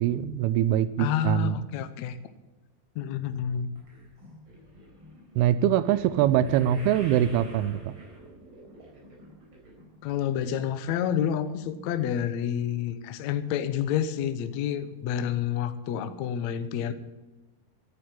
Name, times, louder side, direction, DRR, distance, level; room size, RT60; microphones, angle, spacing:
voice 1, 0.0-1.6 5.4-7.9, right 11 dB, 85° right, 14 dB, 2.6 m, -23 dB
voice 2, 1.0-2.2 2.9-3.7 10.0-16.9, left 9 dB, 85° left, 11 dB, 1.5 m, -29 dB
sound 1, 3.8-10.1 10.4-10.9 11.5-11.6 11.8-11.9, right 1 dB, 35° right, 4.6 m, -47 dB
12.0 x 9.3 x 9.8 m, 1.1 s
omnidirectional pair, 4.5 m